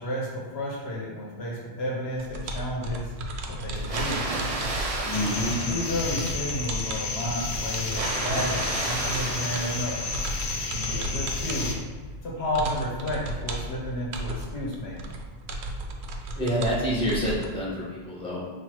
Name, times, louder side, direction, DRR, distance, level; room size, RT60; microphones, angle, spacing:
voice 1, 0.0-3.1 3.5-4.3 5.4-10.0 10.5-11.7 12.2-15.2, left 1 dB, 80° left, -3 dB, 1.2 m, -32 dB
sound 1, 2.1-17.5, right 1 dB, 85° right, 0.8 m, -35 dB
Water, 3.8-6.6 7.8-10.6, right 2 dB, 45° right, 0.6 m, -32 dB
voice 2, 5.0-5.5 16.4-18.4, equal, 5° left, -9 dB, 1.3 m, -27 dB
sound 2, 5.1-11.8, left 4 dB, 55° left, 0.6 m, -32 dB
5.6 x 2.7 x 3.1 m, 1.4 s
omnidirectional pair, 1.1 m